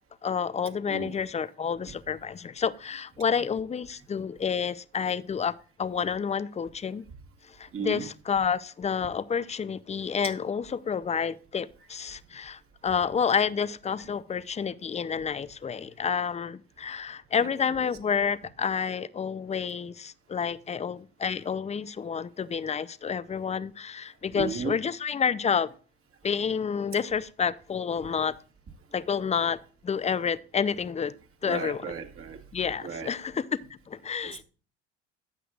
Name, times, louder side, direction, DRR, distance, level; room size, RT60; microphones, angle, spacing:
voice 1, 0.2-5.5 5.8-7.0 7.4-25.7 26.2-28.4 28.9-31.1 31.4-31.9 32.5-33.4 33.9-34.4, left 6 dB, 20° left, 0.6 m, -29 dB
voice 2, 0.9-1.2 1.9-2.0 7.7-8.1 10.2-10.3 17.4-17.9 24.3-24.8 31.4-32.5 32.8-33.1 34.2-34.4, right 6 dB, 40° right, 2.0 m, -36 dB
12.0 x 7.9 x 2.4 m
hypercardioid pair, 70°, 32 cm